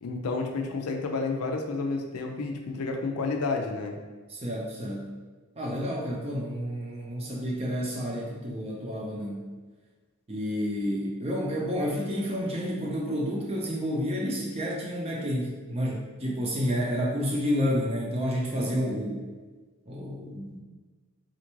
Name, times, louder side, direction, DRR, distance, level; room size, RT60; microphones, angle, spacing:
voice 1, 0.0-4.0, left 3 dB, 85° left, 2 dB, 0.5 m, -30 dB
voice 2, 4.3-5.1 5.6-9.5 10.3-19.2 19.9-20.6, equal, 25° right, -2 dB, 0.6 m, -30 dB
4.2 x 2.5 x 3.0 m, 1.3 s
head